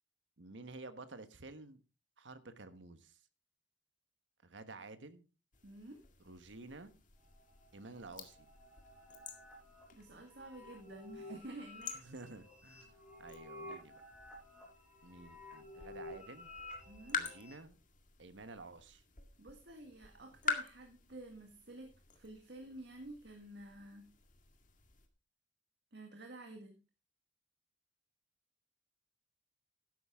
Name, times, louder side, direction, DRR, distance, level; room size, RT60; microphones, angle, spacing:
voice 1, 0.4-1.8 2.2-3.2 4.4-5.3 6.2-6.9 7.7-8.5 11.9-12.9 13.2-14.0 15.0-16.5 17.1-17.8 18.2-19.0, right 3 dB, 90° right, 1.4 m, -51 dB
sound 1, 5.5-25.1, left 5 dB, 45° left, 2.0 m, -48 dB
voice 2, 5.6-6.0 9.9-12.1 16.9-17.2 19.4-21.9 22.1-24.1 25.9-26.8, right 2 dB, 65° right, 1.9 m, -51 dB
sound 2, 7.2-17.6, left 1 dB, 5° right, 5.9 m, -53 dB
13.0 x 11.0 x 3.7 m
head